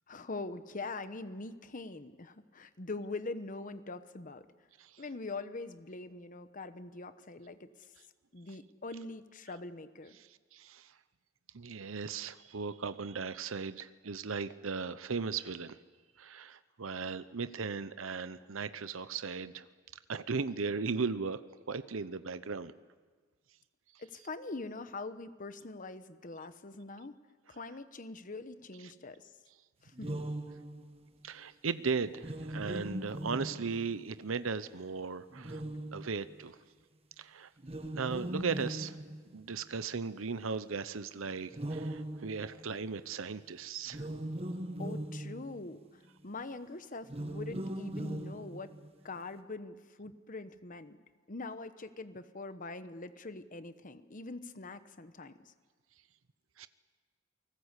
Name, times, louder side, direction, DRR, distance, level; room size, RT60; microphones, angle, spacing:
voice 1, 0.1-4.5 5.0-7.7 8.3-10.2 24.0-27.1 27.5-29.3 29.8-30.2 44.8-45.8 46.2-48.7 49.0-51.0 51.3-55.5, left 3 dB, 40° left, 11 dB, 1.0 m, -43 dB
voice 2, 10.2-10.9 11.5-15.8 16.2-19.7 20.1-21.4 21.7-22.7 31.2-35.6 35.9-36.6 37.2-37.5 37.9-39.0 39.3-44.1 56.6-56.7, right 5 dB, 80° right, 13 dB, 0.8 m, -37 dB
sound 1, 29.9-31.0 32.1-34.1 35.3-36.4 37.6-39.7 41.5-42.9 43.9-45.8 47.0-49.0, right 1 dB, 30° right, 1.4 m, -40 dB
29.0 x 19.5 x 8.3 m, 1.5 s
head